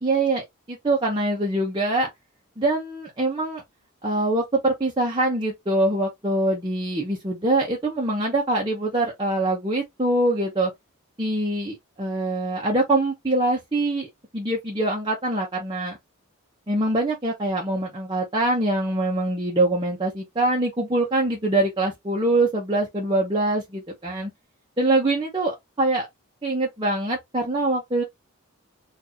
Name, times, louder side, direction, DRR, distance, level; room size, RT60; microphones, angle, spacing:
voice 1, 0.0-2.1 2.6-3.6 4.0-10.7 11.2-14.1 14.3-16.0 16.7-24.3 24.8-26.1 26.4-28.0, right 2 dB, 20° right, 0.8 m, -24 dB
4.0 x 2.6 x 2.7 m
head